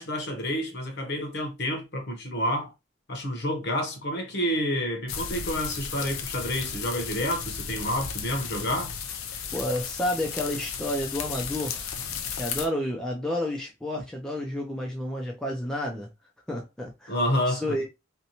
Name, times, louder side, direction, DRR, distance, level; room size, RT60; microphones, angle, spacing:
voice 1, 0.0-2.7 3.1-8.9 17.1-17.8, equal, 50° left, 0.7 m, -29 dB
sound 1, 5.1-12.7, left 6 dB, 75° left, 0.4 m, -34 dB
voice 2, 9.5-11.9 12.3-16.1 16.5-17.2 17.5-17.9, left 1 dB, 5° left, 0.3 m, -30 dB
2.6 x 2.1 x 2.7 m
head